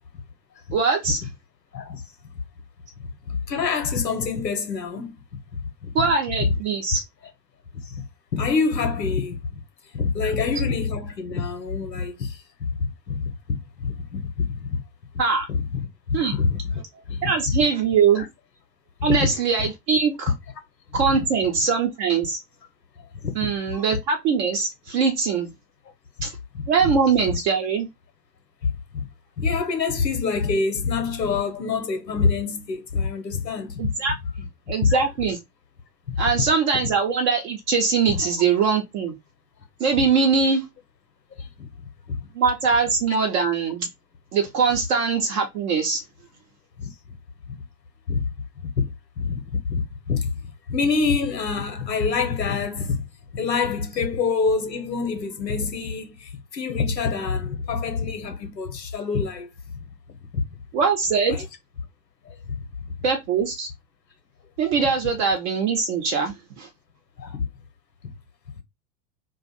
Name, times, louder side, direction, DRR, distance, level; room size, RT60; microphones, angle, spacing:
voice 1, 0.7-1.2 5.9-7.0 10.2-10.3 15.2-15.5 16.1-16.3 17.2-18.2 19.0-20.3 20.9-22.4 23.4-25.5 26.2-26.3 26.7-27.9 33.8-34.1 34.7-35.4 36.2-39.1 39.8-40.6 42.3-43.9 44.3-46.0 60.7-61.4 63.0-63.7 64.6-66.7, right 5 dB, 40° right, 0.8 m, -22 dB
voice 2, 3.0-5.2 5.8-6.1 6.4-6.5 7.9-8.0 8.3-9.6 9.9-12.7 13.1-14.8 15.5-16.8 17.1-17.6 18.2-18.3 19.0-19.3 20.9-21.2 23.0-23.3 26.5-26.9 29.4-33.9 34.8-35.0 36.1-36.2 41.3-41.7 42.1-42.2 46.8-46.9 47.5-47.6 48.1-48.3 48.6-48.7 49.2-50.3 50.7-53.0 53.3-59.5 60.3-60.4 61.3-61.4 62.3-62.5 67.2-67.5, left 5 dB, 75° left, 1.0 m, -26 dB
2.5 x 2.4 x 4.1 m
figure-of-eight pair, 85°, 50 cm